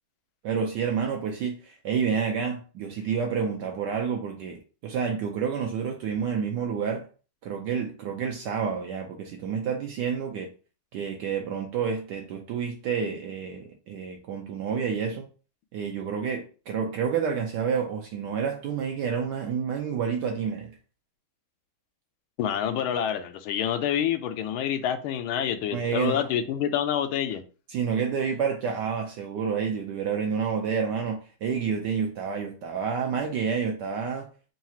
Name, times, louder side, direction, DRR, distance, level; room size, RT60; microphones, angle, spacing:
voice 1, 0.4-7.1 7.4-10.5 10.9-15.3 15.7-20.7 25.7-26.2 27.7-34.3, right 6 dB, 75° right, 1.0 m, -29 dB
voice 2, 22.4-27.4, left 9 dB, 85° left, 1.4 m, -27 dB
3.8 x 2.4 x 4.2 m
omnidirectional pair, 2.3 m